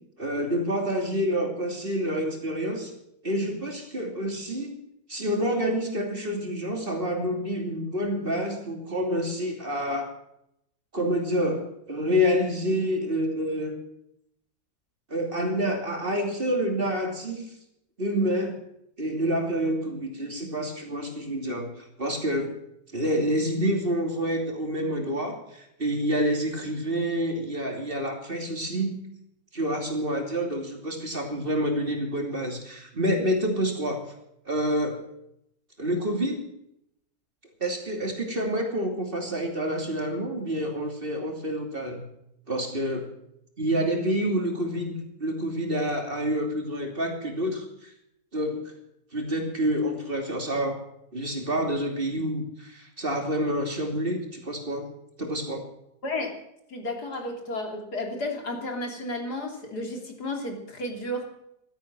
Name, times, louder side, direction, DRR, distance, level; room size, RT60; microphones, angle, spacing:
voice 1, 0.2-2.9 3.2-4.8 5.1-10.1 10.9-13.8 15.1-17.4 18.0-18.6 19.0-22.5 22.9-28.9 29.5-34.1 34.4-35.0 35.8-36.4 37.6-42.0 42.5-43.1 43.6-47.9 48.3-48.7 49.1-50.8 51.1-54.9 55.2-55.7, equal, 35° right, 2 dB, 3.1 m, -28 dB
voice 2, 56.7-61.2, left 1 dB, 80° left, 2 dB, 3.6 m, -32 dB
15.5 x 13.0 x 6.2 m, 0.77 s
omnidirectional pair, 1.7 m